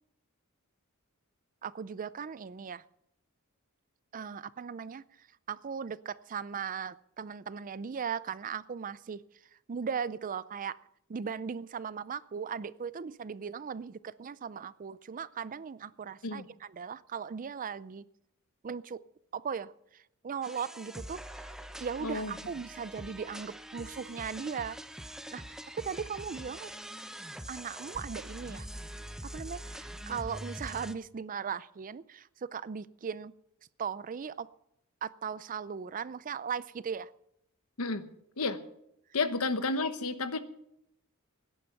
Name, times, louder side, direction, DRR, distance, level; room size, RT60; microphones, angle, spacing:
voice 1, 1.6-2.8 4.1-9.2 9.7-10.8 11.1-18.0 18.6-19.0 19.3-21.5 21.8-24.8 25.3-26.7 27.5-28.7 29.3-33.3 33.8-34.5 35.0-37.1, right 6 dB, 35° right, 17 dB, 0.4 m, -38 dB
sound 1, 20.4-30.9, equal, ahead, 0.7 m, -44 dB
voice 2, 22.0-22.3 37.8-38.1 38.4-38.6 39.1-40.4, left 3 dB, 70° left, 10 dB, 1.1 m, -31 dB
17.5 x 10.5 x 5.8 m, 0.77 s
head